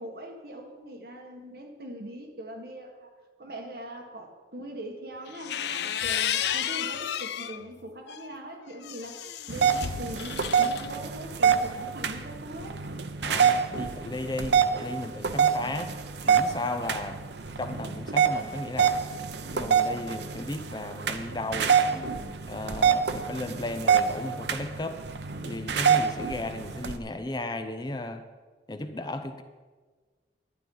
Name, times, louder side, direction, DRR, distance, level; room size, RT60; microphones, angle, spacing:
voice 1, 0.0-3.1 3.4-9.2 9.5-12.8, right 1 dB, 55° right, 1 dB, 1.8 m, -41 dB
sound 1, 5.3-7.6 8.1-10.9, left 9 dB, 65° left, 0.4 m, -32 dB
sound 2, 9.5-27.0, right 7 dB, 70° right, 0.7 m, -26 dB
voice 2, 13.2-16.0 16.2-17.2 17.6-18.9 19.5-25.0 25.4-28.2 28.7-29.4, left 2 dB, 25° left, 8 dB, 0.6 m, -35 dB
11.5 x 9.4 x 5.6 m, 1.4 s
head